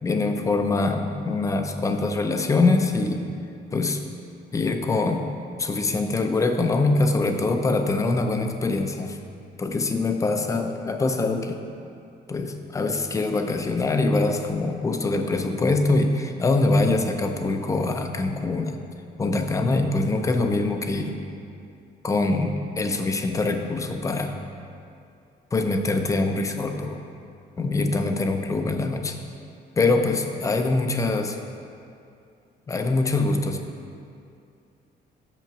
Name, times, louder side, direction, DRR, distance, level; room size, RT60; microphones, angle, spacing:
voice 1, 0.0-3.2 3.7-4.0 4.5-5.3 5.6-9.2 9.6-11.6 12.3-18.8 19.2-21.2 22.0-24.4 25.5-27.0 27.6-29.2 29.8-31.4 32.7-33.6, left 3 dB, 20° left, 5 dB, 0.4 m, -24 dB
7.1 x 5.9 x 5.8 m, 2.5 s
cardioid pair, 180°, 17 cm